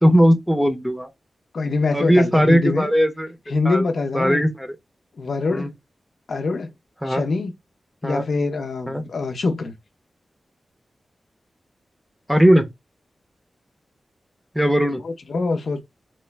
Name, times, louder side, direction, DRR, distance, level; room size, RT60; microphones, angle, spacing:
voice 1, 0.0-1.1 1.9-3.3 3.6-3.9 4.1-4.8 5.5-5.7 7.0-7.3 8.0-8.3 8.9-9.0 12.3-12.7 14.5-15.0, equal, 5° right, 0.6 m, -18 dB
voice 2, 1.5-2.9 3.5-4.4 5.2-5.7 6.3-6.7 7.1-7.5 8.0-9.7 15.0-15.8, left 3 dB, 70° left, 0.6 m, -24 dB
3.0 x 2.0 x 3.2 m
wide cardioid pair, 90°, 0 cm